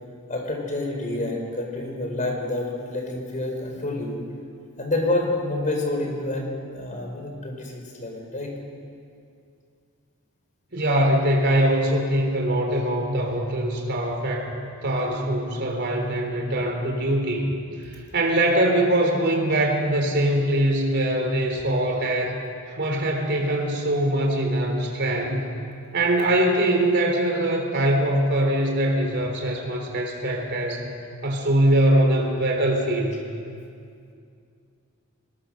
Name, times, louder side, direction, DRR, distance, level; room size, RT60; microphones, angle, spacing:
voice 1, 0.3-4.2 4.8-6.5 6.7-8.5, left 2 dB, 35° left, 1 dB, 4.9 m, -28 dB
voice 2, 10.7-14.5 14.8-17.5 17.9-22.4 22.7-25.4 25.9-30.9 31.2-33.2, right 1 dB, 55° right, 1 dB, 3.8 m, -22 dB
24.5 x 21.0 x 6.6 m, 2.4 s
head